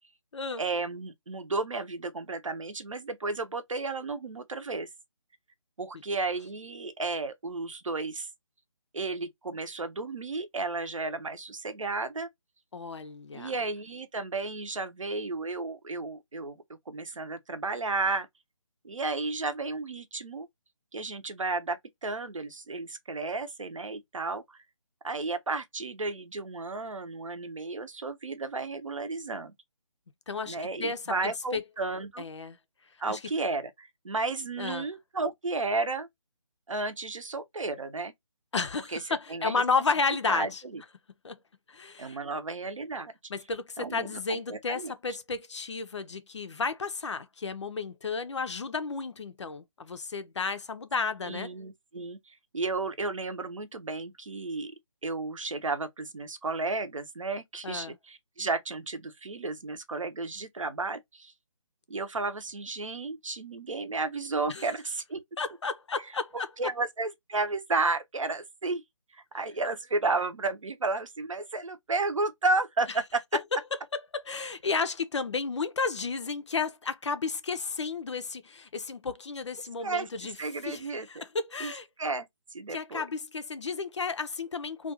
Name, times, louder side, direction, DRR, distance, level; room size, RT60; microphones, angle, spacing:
voice 1, 0.6-4.9 5.8-8.3 8.9-12.3 13.3-16.6 16.9-18.3 18.8-20.5 20.9-24.6 25.0-29.5 30.4-32.2 33.0-36.1 36.7-38.1 38.9-39.0 39.3-39.6 40.3-40.8 42.0-43.1 43.8-44.9 51.2-54.7 55.0-61.3 61.9-65.2 66.3-68.8 69.3-73.2 79.8-80.1 80.4-81.2 81.6-81.7 82.0-82.3 82.5-83.1, right 3 dB, 70° right, 0.7 m, -33 dB
voice 2, 12.7-13.5 30.3-31.6 32.2-32.6 33.1-33.2 34.6-34.9 38.5-40.6 41.2-41.4 41.7-42.2 43.3-51.5 57.6-58.0 64.5-64.7 65.4-66.5 73.3-73.4 73.9-80.4 80.7-81.9 82.7-84.9, left 4 dB, 60° left, 0.5 m, -32 dB
2.4 x 2.3 x 2.7 m
figure-of-eight pair, 150°, 17 cm